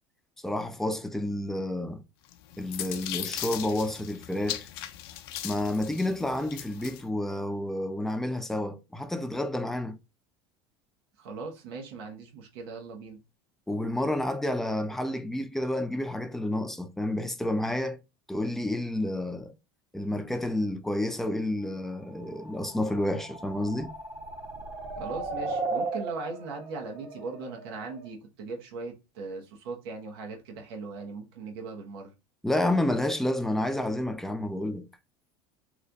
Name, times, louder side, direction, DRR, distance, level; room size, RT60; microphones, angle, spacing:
voice 1, 0.4-2.0 2.6-4.7 5.4-9.9 13.7-18.0 18.3-19.5 19.9-23.9 32.4-34.9, left 1 dB, 5° left, 0.4 m, -30 dB
sound 1, 2.3-7.0, left 12 dB, 80° left, 0.5 m, -38 dB
voice 2, 11.2-13.2 25.0-32.1, right 3 dB, 85° right, 1.0 m, -39 dB
sound 2, 22.3-28.1, right 3 dB, 50° right, 1.0 m, -36 dB
3.1 x 2.3 x 3.8 m
supercardioid pair, 130°, 13 cm